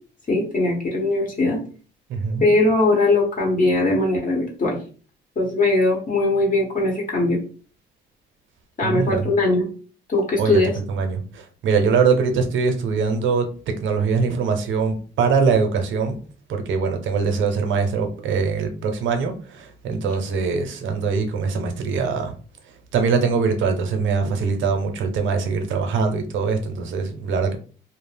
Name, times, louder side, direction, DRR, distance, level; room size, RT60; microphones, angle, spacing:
voice 1, 0.3-1.6 2.4-4.8 5.4-7.4 8.8-9.7 10.1-10.7, left 2 dB, 40° left, 0.9 m, -20 dB
voice 2, 2.1-2.5 8.8-9.3 10.4-10.6 10.9-11.2 11.6-13.5 13.8-16.2 16.5-22.3 22.9-27.6, right 5 dB, 75° right, 0.6 m, -22 dB
2.3 x 2.0 x 3.2 m
cardioid pair, 90°, 20 cm